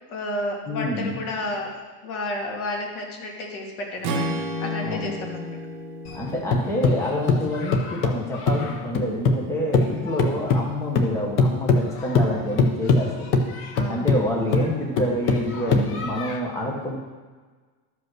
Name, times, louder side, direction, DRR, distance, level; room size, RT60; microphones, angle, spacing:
voice 1, 0.1-1.7 2.0-4.2 4.6-5.6 9.9-10.1 13.7-14.4, left 2 dB, 80° left, 0 dB, 2.5 m, -31 dB
voice 2, 0.7-1.2 4.8-5.1 6.1-13.3 13.9-17.0, left 1 dB, 5° left, -2 dB, 1.1 m, -27 dB
Strum, 4.0-8.3, equal, 50° right, 1.2 m, -32 dB
sound 1, 6.1-9.5 9.7-16.4, left 3 dB, 30° left, 0.7 m, -22 dB
12.5 x 5.2 x 6.2 m, 1.4 s
cardioid pair, 180°, 43 cm